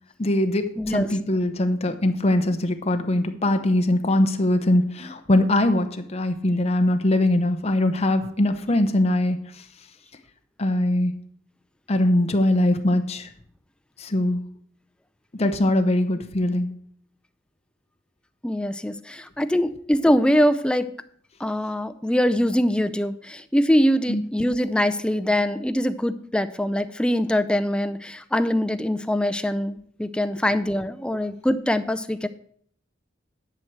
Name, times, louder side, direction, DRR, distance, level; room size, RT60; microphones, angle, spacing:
voice 1, 0.2-9.6 10.6-11.1 11.9-13.3 14.0-14.4 15.3-16.7 24.1-24.2, left 1 dB, 35° left, 7 dB, 0.8 m, -22 dB
voice 2, 0.8-1.1 18.4-20.9 21.4-32.3, equal, 5° left, 10 dB, 0.4 m, -23 dB
10.5 x 4.6 x 7.9 m, 0.62 s
head